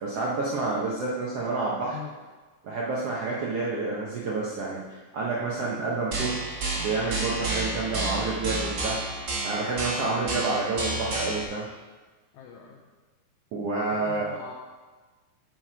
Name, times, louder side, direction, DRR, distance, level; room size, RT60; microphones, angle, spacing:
voice 1, 0.0-2.0 2.6-6.4 6.7-9.0 9.4-11.7 13.5-14.3, right 3 dB, 70° right, -5 dB, 1.4 m, -29 dB
sound 1, 6.1-11.4, right 2 dB, 45° right, 1.5 m, -31 dB
voice 2, 12.3-12.8 13.9-14.5, left 9 dB, 85° left, 1 dB, 1.7 m, -42 dB
8.6 x 6.2 x 5.0 m, 1.3 s
omnidirectional pair, 4.1 m